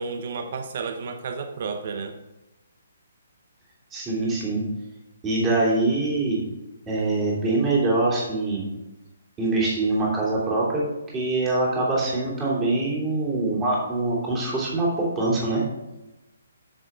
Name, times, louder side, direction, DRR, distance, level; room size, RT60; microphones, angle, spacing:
voice 1, 0.0-2.2, right 4 dB, 50° right, 7 dB, 0.8 m, -32 dB
voice 2, 3.9-4.6 5.2-6.4 6.9-8.6 9.4-10.8 11.1-15.6, right 2 dB, 15° right, -6 dB, 3.1 m, -24 dB
10.0 x 6.5 x 3.7 m, 1.0 s
figure-of-eight pair, 140°, 0 cm